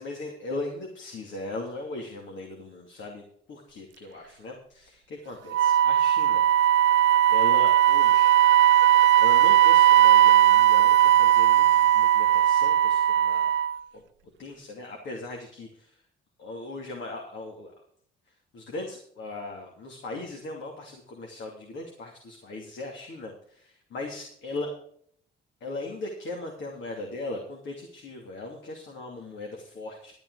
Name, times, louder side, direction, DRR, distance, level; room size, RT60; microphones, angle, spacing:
voice 1, 0.0-6.5 7.3-8.4 9.2-13.5 13.9-14.0 14.4-16.0 16.4-17.7 18.3-24.7 25.6-30.1, left 2 dB, 70° left, 1 dB, 2.8 m, -38 dB
Wind instrument woodwind instrument, 5.5-13.8, right 11 dB, 70° right, 0.4 m, -18 dB
12.5 x 9.2 x 4.9 m, 0.63 s
cardioid pair, 90°, 20 cm